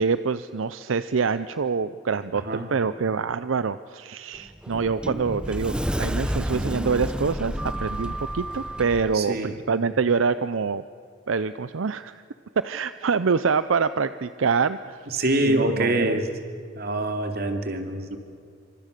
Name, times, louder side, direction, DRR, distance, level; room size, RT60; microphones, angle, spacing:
voice 1, 0.0-10.8 11.3-12.2 12.6-15.0 15.4-16.2, right 5 dB, 80° right, 13 dB, 0.6 m, -25 dB
Sliding door, 4.3-9.1, equal, 5° right, 0.8 m, -30 dB
voice 2, 9.1-9.5 15.1-16.3 16.8-18.2, right 1 dB, 55° right, 5 dB, 2.6 m, -25 dB
28.0 x 25.0 x 6.7 m, 2.3 s
head